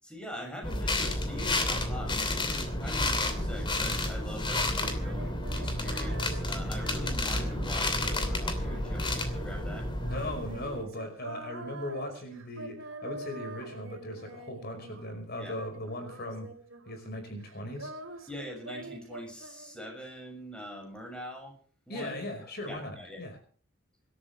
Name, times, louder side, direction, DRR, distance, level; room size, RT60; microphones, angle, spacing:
voice 1, 0.0-9.9 15.4-15.5 18.3-21.6 21.9-22.2 22.7-23.2, left 1 dB, 5° left, 1 dB, 6.5 m, -43 dB
sound 1, 0.6-10.8, left 1 dB, 25° left, 2.9 m, -31 dB
Female singing, 4.9-15.2 15.5-17.1 17.4-20.1, right 2 dB, 90° right, 3.3 m, -46 dB
voice 2, 10.0-16.5 16.9-17.9 21.9-23.4, left 1 dB, 55° left, 6 dB, 5.1 m, -38 dB
26.0 x 13.0 x 3.4 m, 0.43 s
head